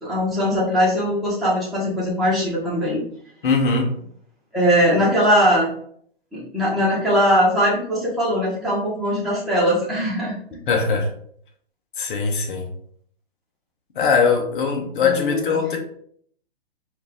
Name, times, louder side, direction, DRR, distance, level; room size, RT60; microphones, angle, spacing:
voice 1, 0.0-3.0 4.5-5.7 6.3-10.3 15.0-15.4, equal, ahead, 1.3 m, -20 dB
voice 2, 3.4-3.9 10.7-11.1 12.0-12.7 13.9-15.8, left 5 dB, 55° left, 1.1 m, -20 dB
4.4 x 2.7 x 3.6 m
hypercardioid pair, 145°, 31 cm